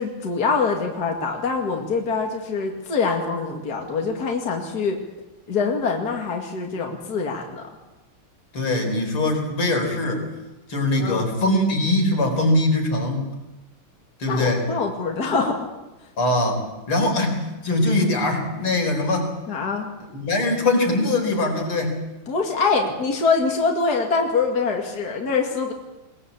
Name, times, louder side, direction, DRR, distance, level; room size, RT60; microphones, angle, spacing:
voice 1, 0.0-5.0 5.5-7.7 11.0-11.3 14.3-15.7 19.5-19.9 22.3-25.7, left 4 dB, 45° left, 1 dB, 2.8 m, -24 dB
voice 2, 8.5-10.3 10.7-13.4 14.2-14.6 16.2-16.6 16.9-19.3 20.1-22.0, left 2 dB, 85° left, 2 dB, 5.1 m, -22 dB
21.5 x 20.5 x 8.3 m, 1.0 s
omnidirectional pair, 2.3 m